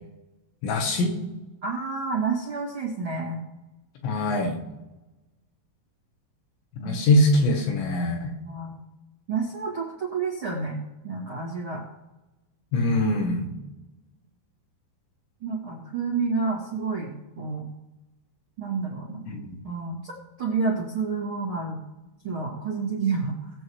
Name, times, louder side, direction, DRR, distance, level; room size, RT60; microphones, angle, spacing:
voice 1, 0.6-1.1 4.0-4.6 6.8-8.3 12.7-13.5 19.3-19.6, left 1 dB, 70° left, 3 dB, 3.1 m, -23 dB
voice 2, 1.6-3.4 6.8-7.0 8.5-8.8 9.3-11.8 15.4-17.7 18.6-19.4 19.6-20.1 20.4-21.8 22.2-23.5, right 4 dB, 50° right, -4 dB, 1.5 m, -29 dB
20.5 x 7.8 x 3.1 m, 1.0 s
omnidirectional pair, 5.9 m